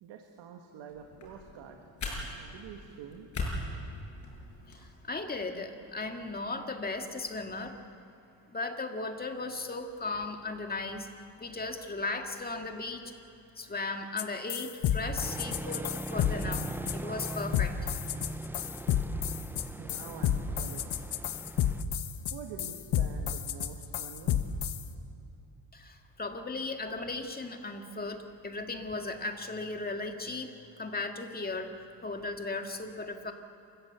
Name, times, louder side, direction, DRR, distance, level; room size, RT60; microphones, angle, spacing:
voice 1, 0.0-1.8 2.4-3.3 19.8-21.0 22.3-24.4, right 7 dB, 90° right, 3 dB, 1.8 m, -46 dB
sound 1, 0.9-4.9, left 2 dB, 45° left, 6.9 m, -40 dB
voice 2, 4.7-7.8 8.5-11.1 11.4-13.1 13.6-17.8 25.7-31.7 32.0-33.3, left 3 dB, 20° left, 4 dB, 2.1 m, -36 dB
sound 2, 14.2-14.3 14.5-24.8, left 10 dB, 65° left, 1.4 m, -30 dB
sound 3, 15.2-21.8, right 1 dB, 5° right, 0.4 m, -40 dB
27.5 x 14.5 x 8.2 m, 2.8 s
cardioid pair, 110°, 42 cm